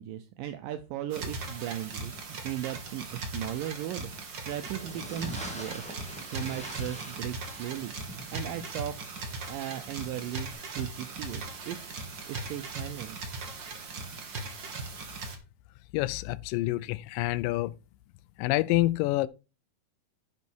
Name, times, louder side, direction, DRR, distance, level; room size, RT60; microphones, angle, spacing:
voice 1, 0.0-4.1 4.4-8.9 9.5-11.8 12.3-13.2, right 12 dB, 80° right, 2.3 m, -37 dB
sound 1, 1.1-15.4, right 3 dB, 45° right, 1.7 m, -39 dB
sound 2, 4.5-10.5, right 1 dB, 10° left, 0.4 m, -45 dB
voice 2, 15.9-17.8 18.4-19.3, left 18 dB, 80° left, 2.2 m, -27 dB
11.0 x 5.5 x 4.6 m
omnidirectional pair, 4.1 m